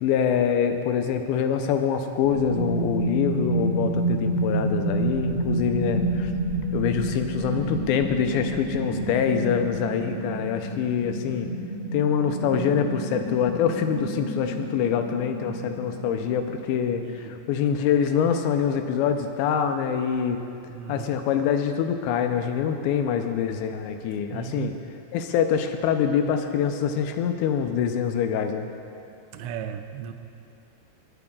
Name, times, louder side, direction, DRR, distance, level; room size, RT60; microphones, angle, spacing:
voice 1, 0.0-6.3 6.7-11.5 11.9-20.4 20.9-24.7 25.1-28.7, left 8 dB, 80° left, 6 dB, 2.7 m, -25 dB
sound 1, 2.2-17.7 18.0-18.1, right 1 dB, 35° left, 1.7 m, -29 dB
voice 2, 17.0-17.3 20.7-21.2 24.3-24.7 29.3-30.1, right 9 dB, 80° right, 6 dB, 2.6 m, -36 dB
25.5 x 10.5 x 2.4 m, 2.7 s
omnidirectional pair, 5.3 m